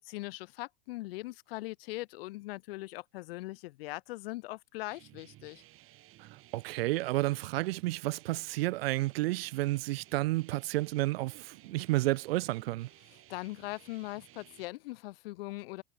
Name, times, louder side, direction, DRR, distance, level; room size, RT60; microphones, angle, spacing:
voice 1, 0.0-5.6 13.3-15.8, left 20 dB, 60° left, 1.4 m, -41 dB
sound 1, 4.9-14.7, right 16 dB, 40° right, 8.0 m, -57 dB
voice 2, 6.2-12.9, right 19 dB, 65° right, 1.5 m, -31 dB
hypercardioid pair, 110°, 32 cm